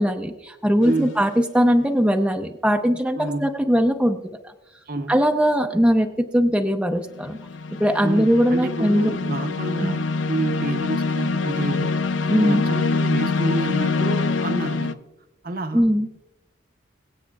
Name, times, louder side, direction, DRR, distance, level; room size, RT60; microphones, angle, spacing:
voice 1, 0.0-4.2 4.4-4.5 5.1-7.4 7.8-9.1 9.8-9.9 12.3-12.6 15.7-16.1, equal, 5° right, 4 dB, 0.5 m, -20 dB
sound 1, 0.8-1.2 7.1-14.9, left 3 dB, 80° left, 0.5 m, -25 dB
voice 2, 0.8-1.2 3.2-3.5 4.9-5.1 8.0-11.9 12.4-15.0 15.4-16.2, right 2 dB, 50° right, 8 dB, 0.7 m, -29 dB
23.0 x 8.3 x 2.3 m, 0.98 s
head